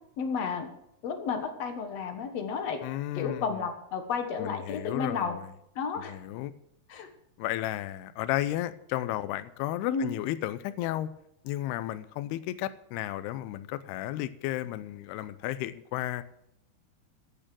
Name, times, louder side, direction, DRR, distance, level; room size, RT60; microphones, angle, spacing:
voice 1, 0.2-0.7 1.0-2.8 3.2-5.4 5.8-6.1 6.9-7.1 9.9-10.1, left 5 dB, 60° left, 6 dB, 1.9 m, -32 dB
voice 2, 2.8-3.7 4.4-5.5 6.1-6.5 7.4-11.1 11.4-16.2, left 14 dB, 85° left, 13 dB, 2.6 m, -33 dB
14.0 x 8.8 x 6.3 m, 0.79 s
omnidirectional pair, 4.7 m